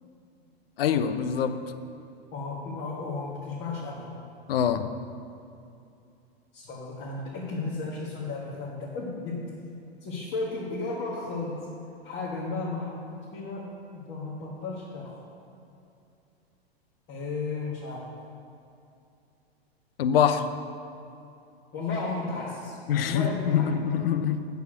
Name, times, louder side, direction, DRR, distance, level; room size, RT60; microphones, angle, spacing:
voice 1, 0.8-1.6 4.5-4.9 20.0-20.5 22.9-24.5, left 8 dB, 65° left, 12 dB, 0.7 m, -24 dB
voice 2, 2.3-4.1 6.5-9.4 10.0-11.6 12.0-15.2 17.1-18.1 21.7-23.7, left 3 dB, 35° left, -5 dB, 1.8 m, -34 dB
9.2 x 6.4 x 6.3 m, 2.6 s
hypercardioid pair, 105°, 32 cm